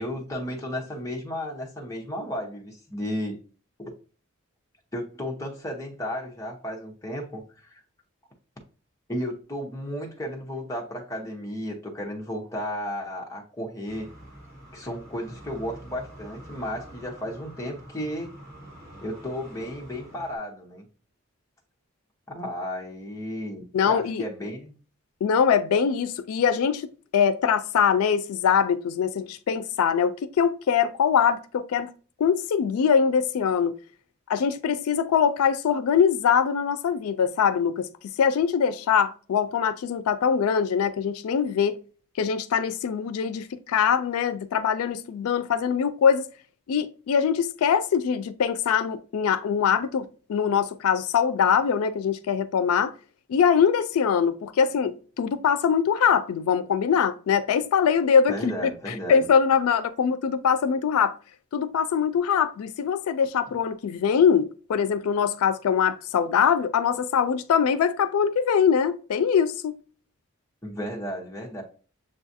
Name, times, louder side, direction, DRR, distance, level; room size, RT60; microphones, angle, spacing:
voice 1, 0.0-3.4 3.8-3.9 4.9-7.8 9.1-14.1 14.7-18.3 19.0-20.8 22.3-24.7 58.3-59.3 70.6-71.6, equal, 15° left, 0.8 m, -33 dB
sound 1, 13.9-20.4, right 1 dB, 15° right, 1.4 m, -46 dB
voice 2, 23.7-24.3 25.2-31.9 32.2-33.7 34.3-37.9 38.2-41.8 42.2-46.3 46.7-52.9 53.3-61.1 61.5-69.8, left 7 dB, 85° left, 0.3 m, -23 dB
7.0 x 2.4 x 2.6 m
head